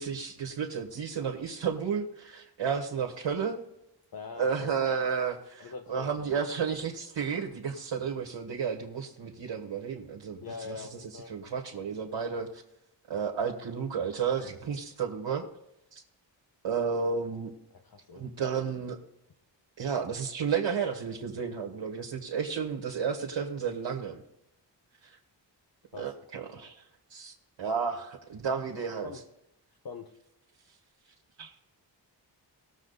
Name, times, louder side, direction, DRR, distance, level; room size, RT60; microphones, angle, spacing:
voice 1, 0.0-3.6 4.4-10.4 10.7-10.9 11.3-12.6 13.1-15.4 15.9-16.0 16.6-17.5 18.1-19.0 19.8-24.2 26.0-26.8 27.1-29.1 31.4-31.5, right 6 dB, 80° right, 0 dB, 1.5 m, -32 dB
voice 2, 4.1-4.7 5.6-6.4 10.4-11.3 17.8-18.3 25.9-26.1 29.0-29.2 29.8-30.1 31.4-31.6, left 5 dB, 55° left, 3 dB, 1.2 m, -43 dB
18.5 x 7.4 x 4.1 m, 0.83 s
wide cardioid pair, 100°, 44 cm